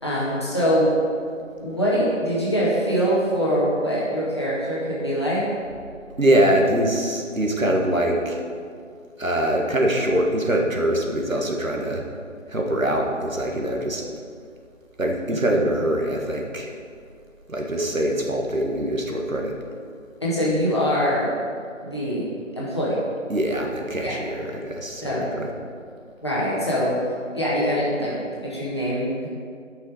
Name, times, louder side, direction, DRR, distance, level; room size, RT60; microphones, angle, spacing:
voice 1, 0.0-0.9 1.6-5.4 15.3-15.6 20.2-21.3 21.8-22.2 22.6-23.0 24.0-24.1 25.0-25.2 26.2-27.0 27.3-29.3, equal, 20° left, -8 dB, 1.5 m, -23 dB
voice 2, 6.2-8.4 9.2-12.0 12.5-14.0 15.0-16.7 17.5-19.6 23.3-25.5, right 1 dB, 85° right, 1 dB, 1.8 m, -23 dB
12.5 x 5.7 x 4.9 m, 2.2 s
figure-of-eight pair, 165°, 39 cm